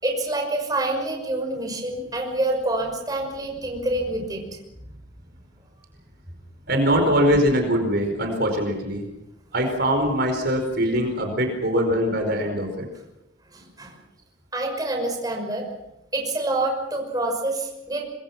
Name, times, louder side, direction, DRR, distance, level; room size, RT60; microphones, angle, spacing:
voice 1, 0.0-4.4 13.5-13.9 14.5-15.7 16.1-18.0, right 2 dB, 20° right, 2 dB, 5.8 m, -27 dB
voice 2, 6.7-9.0 9.5-12.9, equal, 55° right, 4 dB, 4.9 m, -22 dB
26.0 x 22.0 x 6.1 m, 0.90 s
head